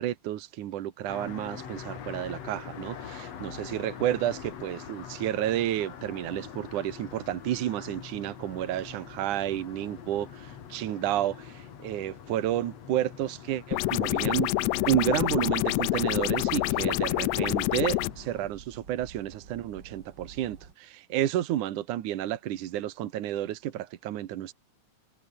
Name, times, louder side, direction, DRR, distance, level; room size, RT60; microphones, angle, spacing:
voice 1, 0.0-14.5 14.9-24.5, right 12 dB, 75° right, 2.8 m, -31 dB
sound 1, 1.1-18.5, left 8 dB, 55° left, 3.1 m, -44 dB
sound 2, 13.7-18.1, left 19 dB, 80° left, 1.6 m, -27 dB
sound 3, 14.7-20.7, right 5 dB, 35° right, 2.9 m, -49 dB
omnidirectional pair, 3.6 m